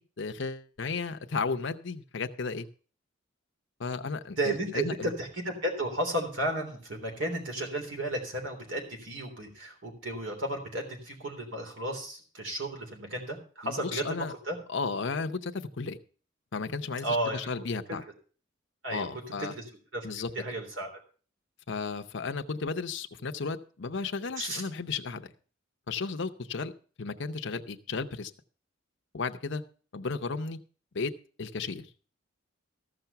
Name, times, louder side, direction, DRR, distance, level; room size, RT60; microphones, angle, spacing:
voice 1, 0.0-2.7 3.8-5.1 13.6-14.3 14.7-16.0 16.5-18.0 18.9-19.5 20.0-20.3 21.7-25.3 25.9-26.7 27.0-28.3 29.1-29.6 29.9-30.6 30.9-31.1 31.4-31.9, left 4 dB, 60° left, 7 dB, 0.7 m, -34 dB
voice 2, 4.4-14.6 17.0-17.4 18.8-19.2 19.5-19.6 19.9-20.1 20.3-20.9 24.4-24.6, right 1 dB, 65° right, 3 dB, 3.4 m, -33 dB
14.5 x 5.9 x 6.7 m, 0.41 s
head